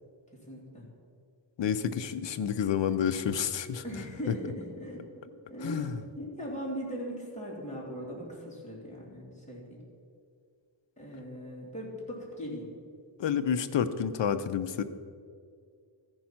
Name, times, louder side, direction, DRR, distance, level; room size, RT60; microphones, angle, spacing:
voice 1, 0.4-0.9 3.8-5.0 5.5-5.9 6.2-9.8 11.0-12.7, equal, 15° left, -4 dB, 2.9 m, -39 dB
voice 2, 1.6-3.8 4.3-4.4 5.6-6.0 13.2-14.8, left 8 dB, 65° left, 11 dB, 0.7 m, -29 dB
14.0 x 5.3 x 5.8 m, 2.2 s
wide cardioid pair, 105°, 48 cm